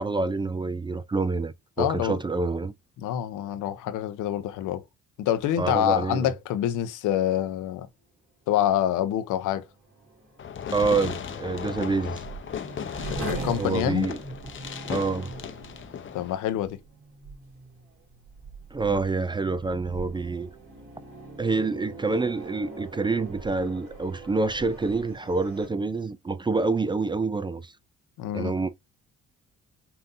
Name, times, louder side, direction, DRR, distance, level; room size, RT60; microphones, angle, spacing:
voice 1, 0.0-2.7 5.6-6.3 10.7-12.2 13.5-14.2 14.9-15.3 18.7-20.5 21.4-27.7 28.3-28.7, right 3 dB, 15° right, 0.3 m, -27 dB
voice 2, 1.8-2.2 3.0-4.8 5.2-7.9 8.5-9.6 13.0-14.1 16.1-16.8 18.9-19.0 28.2-28.5, left 11 dB, 90° left, 0.7 m, -26 dB
sound 1, 8.9-25.7, right 3 dB, 45° right, 2.5 m, -41 dB
Fireworks, 10.4-16.4, left 8 dB, 40° left, 0.6 m, -36 dB
5.5 x 2.7 x 2.6 m
cardioid pair, 90°, 30 cm